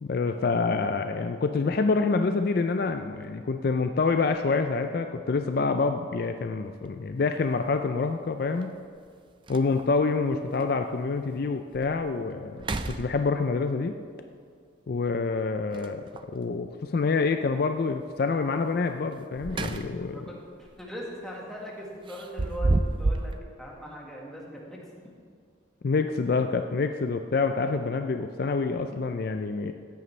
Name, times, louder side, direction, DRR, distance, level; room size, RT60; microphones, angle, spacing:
voice 1, 0.0-8.7 9.5-13.9 14.9-16.0 16.3-20.3 25.8-29.7, left 4 dB, 50° left, 6 dB, 0.4 m, -27 dB
sound 1, 6.7-6.9 8.6-8.7 9.1-9.2 9.5-10.0 10.6-10.7 11.2-11.3 11.7-12.1 12.5-13.6 15.7-16.4 19.1-20.2 20.5-20.8 22.1-23.4, right 2 dB, 25° right, 0.4 m, -30 dB
voice 2, 20.1-24.8, equal, 5° left, -3 dB, 1.5 m, -40 dB
14.0 x 9.4 x 3.2 m, 2.2 s
head